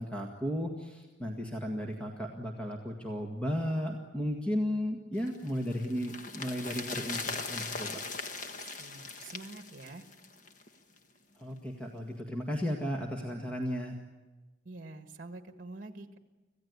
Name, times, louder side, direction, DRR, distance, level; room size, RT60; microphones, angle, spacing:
voice 1, 0.0-8.0 11.4-14.0, equal, 5° left, 1 dB, 1.8 m, -34 dB
sound 1, 5.3-10.7 11.0-11.1, left 4 dB, 40° left, 1.5 m, -40 dB
voice 2, 8.6-10.1 14.7-16.2, right 2 dB, 45° right, 6 dB, 1.6 m, -46 dB
26.5 x 16.0 x 9.7 m, 1.2 s
head